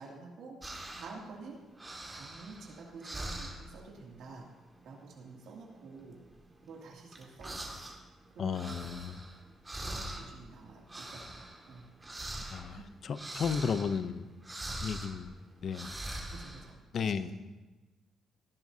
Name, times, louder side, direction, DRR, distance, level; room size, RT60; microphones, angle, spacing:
voice 1, 0.0-1.6 2.1-4.5 4.8-6.2 6.6-7.7 8.3-9.2 9.8-11.9 12.7-12.9 16.3-17.3, right 3 dB, 80° right, -2 dB, 2.5 m, -49 dB
sound 1, 0.6-1.3 1.6-3.8 4.2-4.5 4.7-5.1 5.6-8.0 8.3-16.7, right 1 dB, 15° right, 2.0 m, -43 dB
voice 2, 8.4-9.2 12.5-14.3 14.8-15.3 15.6-15.9 16.9-17.3, left 6 dB, 55° left, 13 dB, 0.6 m, -34 dB
17.5 x 10.5 x 2.8 m, 1.2 s
cardioid pair, 90°, 0 cm